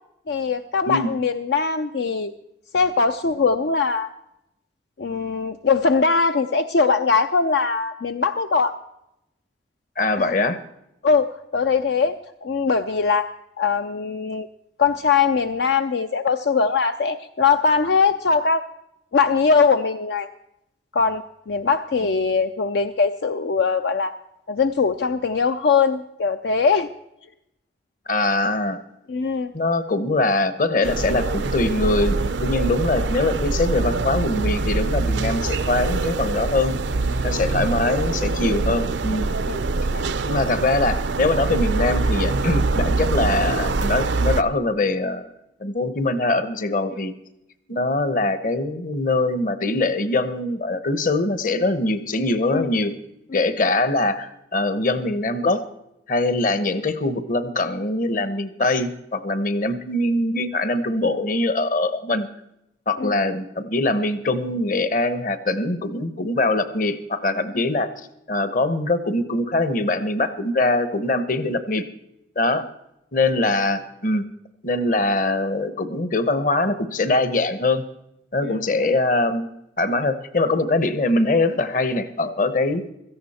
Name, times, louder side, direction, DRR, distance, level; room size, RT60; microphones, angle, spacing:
voice 1, 0.3-2.3 2.7-4.1 5.0-8.7 10.2-10.3 11.0-13.3 13.6-14.5 14.8-18.6 19.1-20.3 20.9-24.1 24.5-26.9 29.1-29.5 37.3-37.4 39.5-39.6 39.9-40.1 52.5-52.7 63.0-63.1 78.4-78.6, left 5 dB, 70° left, 8 dB, 0.5 m, -21 dB
voice 2, 10.0-10.6 28.1-28.8 29.5-36.8 37.2-39.3 40.2-45.3 45.6-47.1 47.7-52.9 53.3-55.6 56.1-62.3 62.9-67.9 68.3-71.9 72.4-72.6 73.1-74.2 74.6-77.8 78.3-79.5 79.8-82.8, left 2 dB, 45° left, 13 dB, 1.0 m, -22 dB
sound 1, 30.8-44.4, right 3 dB, 80° right, 0.6 m, -24 dB
16.5 x 13.5 x 4.2 m, 0.84 s
head